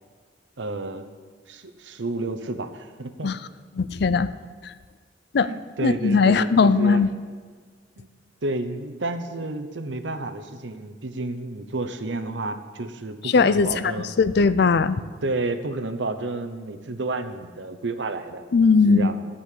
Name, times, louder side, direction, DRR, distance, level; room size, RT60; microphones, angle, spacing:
voice 1, 0.6-1.1 1.5-3.3 4.0-4.1 5.4-7.0 8.0-8.1 8.4-14.1 15.2-18.4 18.9-19.3, right 2 dB, 75° right, 8 dB, 0.9 m, -31 dB
voice 2, 3.8-4.3 5.3-5.5 5.8-7.1 13.2-13.9 14.2-15.0 18.5-19.1, left 4 dB, 60° left, 14 dB, 0.4 m, -19 dB
13.5 x 5.6 x 8.3 m, 1.5 s
head